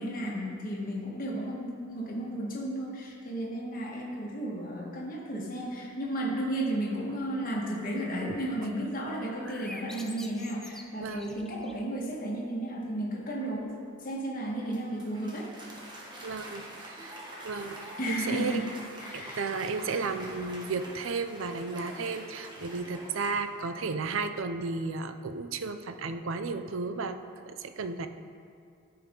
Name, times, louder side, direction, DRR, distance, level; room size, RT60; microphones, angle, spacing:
voice 1, 0.0-13.7 14.0-15.5 18.0-18.7 19.0-19.5, right 1 dB, 45° left, -4 dB, 1.6 m, -33 dB
sound 1, 9.2-11.9, left 1 dB, 5° left, 0.4 m, -46 dB
voice 2, 11.0-11.3 16.2-17.2 17.4-18.6 19.1-27.2 27.5-28.1, right 4 dB, 75° right, 9 dB, 0.5 m, -34 dB
Applause, 14.5-24.0, right 1 dB, 20° right, 1.4 m, -45 dB
13.5 x 5.7 x 3.8 m, 2.3 s
head